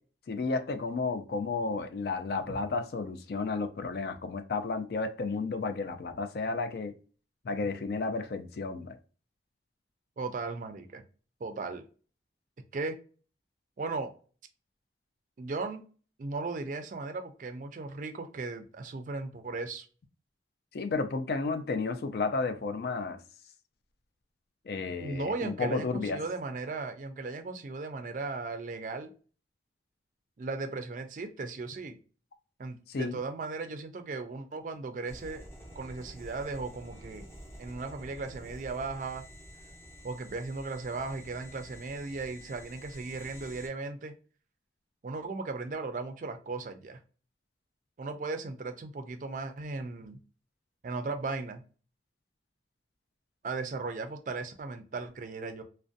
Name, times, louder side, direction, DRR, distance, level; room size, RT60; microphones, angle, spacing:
voice 1, 0.3-6.9 7.4-9.0 20.7-23.2 24.7-26.2 32.9-33.2, left 4 dB, 60° left, 0.3 m, -32 dB
voice 2, 10.2-11.0 11.4-11.8 12.7-13.0 13.8-14.1 15.4-15.8 16.2-19.9 25.0-29.1 30.4-32.0 32.6-35.4 35.8-37.3 37.6-39.2 40.0-44.1 45.0-47.0 48.0-50.2 50.8-51.6 53.4-55.6, right 3 dB, 45° right, 0.4 m, -37 dB
sound 1, 35.1-43.7, equal, 15° left, 0.6 m, -49 dB
2.4 x 2.1 x 2.6 m
head